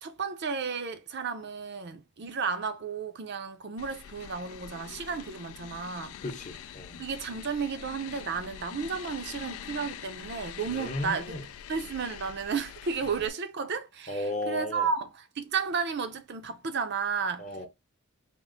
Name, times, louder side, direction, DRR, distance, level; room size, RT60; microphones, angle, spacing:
voice 1, 0.0-6.2 7.0-11.4 11.7-17.5, right 5 dB, 50° right, 0.5 m, -33 dB
sound 1, 3.8-13.3, left 9 dB, 70° left, 0.3 m, -44 dB
voice 2, 6.2-7.0 10.7-11.4 14.1-14.9 17.4-17.7, left 1 dB, 35° left, 0.8 m, -35 dB
3.6 x 2.5 x 3.7 m
head